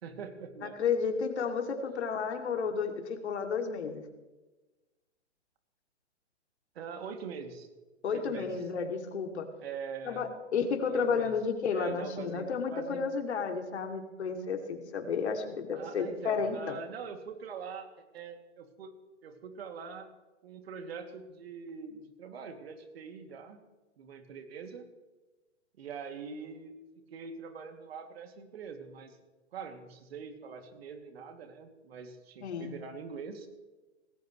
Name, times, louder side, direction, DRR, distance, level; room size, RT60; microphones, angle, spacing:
voice 1, 0.0-0.8 6.7-7.7 8.1-8.5 9.6-10.3 10.8-11.3 11.7-13.2 15.7-18.9 19.2-20.1 20.4-23.6 24.0-24.9 25.8-26.7 27.1-29.2 29.5-33.5, right 6 dB, 55° right, 5 dB, 2.7 m, -43 dB
voice 2, 0.6-4.0 8.0-9.5 10.0-16.8 32.4-32.7, left 5 dB, 65° left, 4 dB, 2.9 m, -32 dB
19.0 x 17.5 x 3.2 m, 1.2 s
hypercardioid pair, 140°, 36 cm